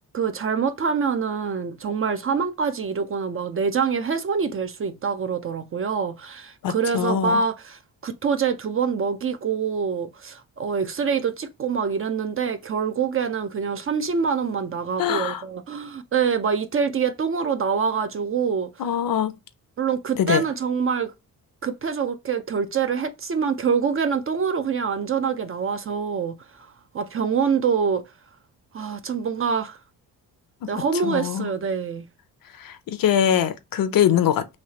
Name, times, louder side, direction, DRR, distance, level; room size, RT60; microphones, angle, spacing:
voice 1, 0.1-18.7 19.8-21.1 21.6-26.7 26.9-28.0 28.7-29.8 30.7-32.0, right 6 dB, 35° right, 0.4 m, -25 dB
voice 2, 6.6-7.4 15.0-15.4 18.8-19.3 20.2-20.4 30.6-30.7 31.0-31.5 32.6-34.5, left 9 dB, 65° left, 0.6 m, -23 dB
3.3 x 2.8 x 2.7 m
cardioid pair, 90°, 37 cm